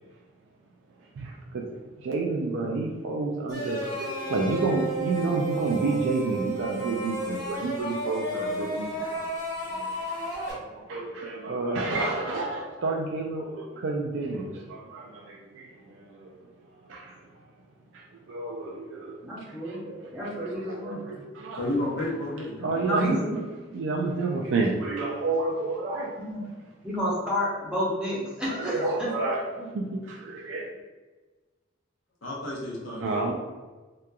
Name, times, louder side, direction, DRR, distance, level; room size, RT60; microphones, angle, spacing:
voice 1, 1.2-1.6 2.0-9.2 9.7-10.0 10.5-16.5 16.8-17.3 17.9-21.6 22.6-23.2 23.7-26.2 28.5-29.4 29.7-30.7 33.0-33.3, right 3 dB, 75° right, -1 dB, 0.3 m, -30 dB
sound 1, 3.5-10.5, right 2 dB, 20° left, 0.9 m, -32 dB
voice 2, 19.2-19.8 20.1-21.1 22.8-23.4 26.2-26.4 26.8-29.1, equal, 5° right, -8 dB, 0.6 m, -30 dB
voice 3, 21.6-22.7 32.2-33.3, left 1 dB, 90° left, -3 dB, 0.8 m, -31 dB
2.8 x 2.3 x 2.3 m, 1.3 s
head